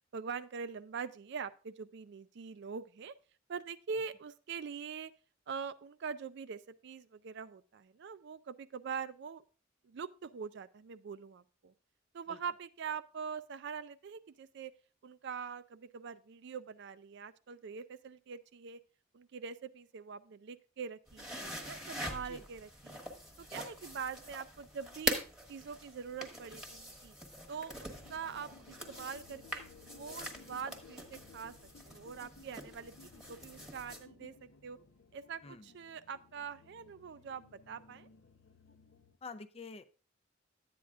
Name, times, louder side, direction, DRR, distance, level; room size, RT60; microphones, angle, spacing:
voice 1, 0.1-3.1 3.5-5.1 5.5-9.4 9.8-11.7 12.1-14.7 15.0-18.8 19.1-23.0 23.4-25.2 25.5-27.1 27.5-31.5 31.9-34.8 35.1-38.1, right 6 dB, 60° right, 13 dB, 0.4 m, -43 dB
sound 1, 21.1-34.0, equal, ahead, 1.1 m, -43 dB
sound 2, 27.9-39.2, left 4 dB, 75° left, 0.6 m, -59 dB
voice 2, 39.2-39.8, left 4 dB, 30° left, 11 dB, 0.4 m, -47 dB
11.5 x 8.5 x 2.4 m, 0.37 s
head